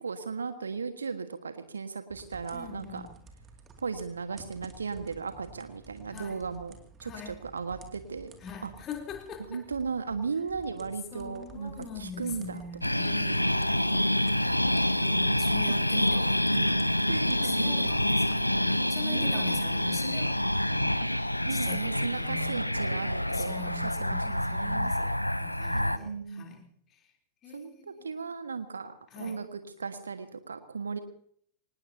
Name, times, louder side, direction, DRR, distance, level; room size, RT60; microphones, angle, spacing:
voice 1, 0.0-3.0 3.8-6.7 7.0-8.3 8.6-8.7 9.5-13.0 13.2-13.5 15.7-15.8 17.1-18.3 19.0-19.6 21.4-24.9 25.7-26.5 27.5-31.0, right 5 dB, 75° right, 9 dB, 1.6 m, -36 dB
sound 1, 2.1-18.8, right 4 dB, 25° right, 2.5 m, -52 dB
voice 2, 2.5-3.2 6.1-6.4 7.0-7.4 8.4-9.6 11.1-14.0 15.0-17.0 17.4-21.0 21.5-22.8 23.3-27.0 27.4-28.2 29.1-29.4, left 6 dB, 30° left, 2 dB, 3.7 m, -43 dB
sound 2, 12.8-26.0, left 1 dB, 90° left, 0.6 m, -27 dB
24.5 x 19.5 x 2.9 m, 0.62 s
figure-of-eight pair, 90°, 0 cm